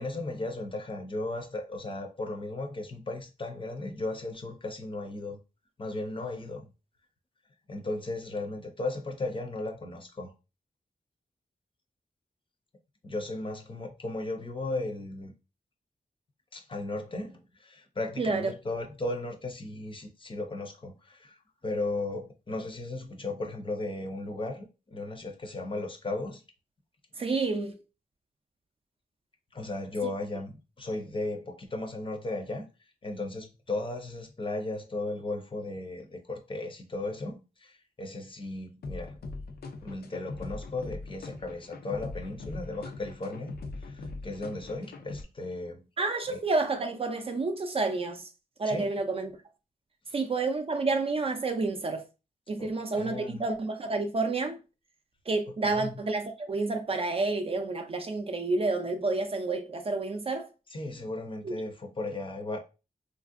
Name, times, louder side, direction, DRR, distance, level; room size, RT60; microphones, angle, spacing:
voice 1, 0.0-5.4 5.8-6.6 7.7-10.3 13.0-15.3 16.5-21.4 21.6-26.4 29.5-32.6 33.0-39.2 39.8-45.8 46.3-46.4 48.6-48.9 50.1-50.2 52.6-53.4 55.6-55.9 60.7-62.6, left 2 dB, 35° left, 0.5 m, -36 dB
voice 2, 18.2-18.5 27.2-27.8 46.0-48.3 48.6-49.3 50.1-52.0 52.5-54.6 55.3-60.5 61.4-61.6, right 3 dB, 40° right, 0.4 m, -29 dB
sound 1, 38.8-45.2, left 3 dB, 90° left, 0.5 m, -41 dB
3.2 x 2.5 x 2.4 m
wide cardioid pair, 165°, 16 cm